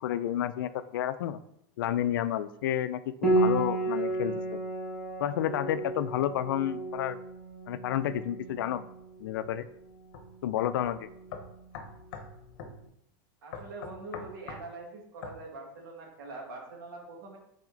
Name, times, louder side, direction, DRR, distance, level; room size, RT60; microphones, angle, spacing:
voice 1, 0.0-1.4 1.8-4.6 5.2-7.2 7.7-8.8 9.2-9.7 10.4-11.1, left 11 dB, 90° left, 14 dB, 0.4 m, -30 dB
Piano, 3.2-12.6, right 2 dB, 5° left, 1.4 m, -33 dB
Chink clink, 4.0-8.0, right 1 dB, 15° right, 1.5 m, -47 dB
sound 1, 10.1-10.3 10.8-10.9 11.3-12.3 12.6-12.8 13.5-14.7 15.2-15.4, left 5 dB, 60° left, 1.0 m, -42 dB
voice 2, 13.4-17.4, right 2 dB, 90° right, 1 dB, 1.8 m, -43 dB
6.0 x 4.2 x 3.8 m, 0.75 s
supercardioid pair, 145°, 11 cm